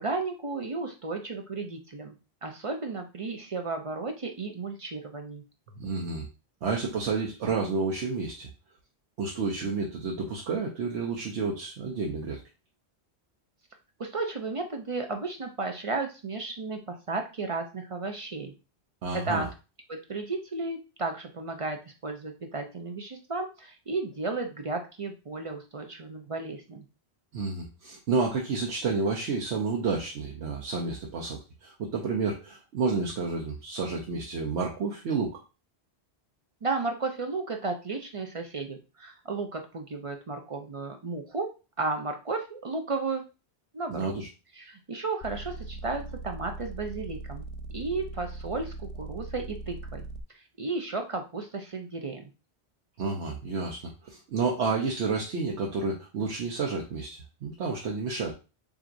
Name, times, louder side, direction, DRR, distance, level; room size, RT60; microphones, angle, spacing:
voice 1, 0.0-2.1 2.4-5.4 14.0-18.5 19.1-19.5 19.9-26.8 36.6-41.5 41.8-43.2 43.7-44.1 44.5-47.5 47.7-50.1 50.3-52.3, right 3 dB, 45° right, 4 dB, 0.5 m, -34 dB
voice 2, 5.8-6.3 6.6-8.5 9.2-12.4 19.0-19.5 27.3-35.4 43.9-44.3 53.0-58.3, right 4 dB, 90° right, -1 dB, 1.1 m, -30 dB
sound 1, 45.2-50.2, right 3 dB, 85° left, 0.9 m, -40 dB
7.2 x 2.6 x 2.5 m, 0.31 s
omnidirectional pair, 1.1 m